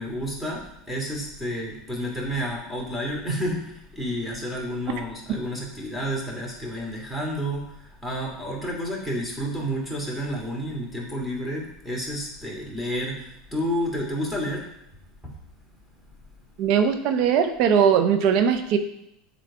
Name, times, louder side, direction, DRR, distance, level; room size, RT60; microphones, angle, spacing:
voice 1, 0.0-14.7 15.2-15.3, equal, ahead, -2 dB, 2.4 m, -30 dB
voice 2, 16.6-18.8, right 7 dB, 60° right, 8 dB, 0.7 m, -20 dB
7.5 x 3.5 x 4.8 m, 0.79 s
hypercardioid pair, 85°, 0 cm